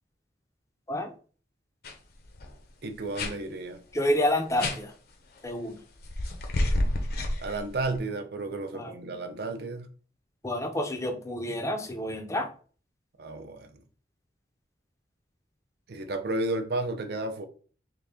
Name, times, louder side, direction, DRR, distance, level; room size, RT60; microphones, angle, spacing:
sound 1, 1.8-1.9 2.2-2.5 3.2-3.3 4.6-4.8 6.0-8.0, left 1 dB, 60° left, 0.7 m, -29 dB
voice 1, 2.8-3.8 7.4-9.9 13.2-13.7 15.9-17.5, right 2 dB, 60° right, 0.6 m, -32 dB
voice 2, 3.9-4.9 5.4-5.8 8.7-8.9 10.4-12.5, left 1 dB, 15° left, 0.5 m, -28 dB
3.8 x 2.6 x 3.4 m
head